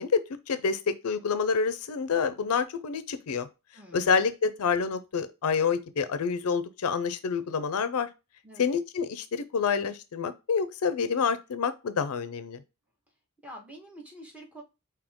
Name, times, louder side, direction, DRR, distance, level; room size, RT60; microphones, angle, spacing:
voice 1, 0.0-3.5 3.9-8.1 8.6-12.6, left 5 dB, 75° left, 0.5 m, -28 dB
voice 2, 3.7-4.2 8.4-8.7 13.4-14.6, right 1 dB, 5° right, 1.3 m, -46 dB
5.1 x 2.8 x 3.5 m
head